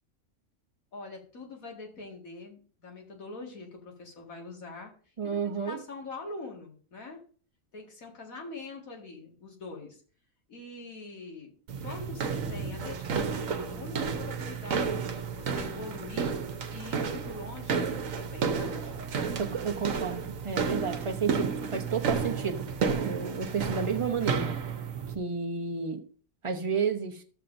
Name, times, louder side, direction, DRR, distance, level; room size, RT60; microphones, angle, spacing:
voice 1, 0.9-4.9 5.2-7.2 7.7-10.0 10.5-11.5 11.8-16.3 16.7-18.9, left 3 dB, 85° left, 0 dB, 2.5 m, -44 dB
voice 2, 5.2-5.8 19.4-22.8 23.0-24.5 25.1-26.0 26.4-27.2, right 6 dB, 25° right, 3 dB, 0.9 m, -31 dB
sound 1, 11.7-25.1, right 5 dB, 75° right, 1.3 m, -32 dB
14.0 x 7.3 x 2.6 m, 0.42 s
omnidirectional pair, 1.4 m